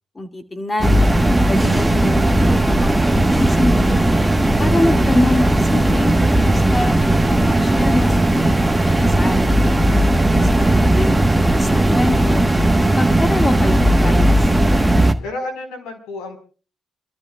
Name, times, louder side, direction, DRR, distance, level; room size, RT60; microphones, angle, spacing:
voice 1, 0.2-1.1 1.5-4.1 4.6-7.0 7.3-9.5 10.3-12.5 13.0-14.3, left 1 dB, 20° left, 6 dB, 2.2 m, -25 dB
sound 1, 0.8-15.1, right 1 dB, 10° right, 1.3 m, -16 dB
voice 2, 9.6-10.1 15.2-16.4, left 2 dB, 90° left, 4 dB, 4.6 m, -31 dB
30.0 x 13.5 x 2.4 m, 0.37 s
cardioid pair, 90°, 0 cm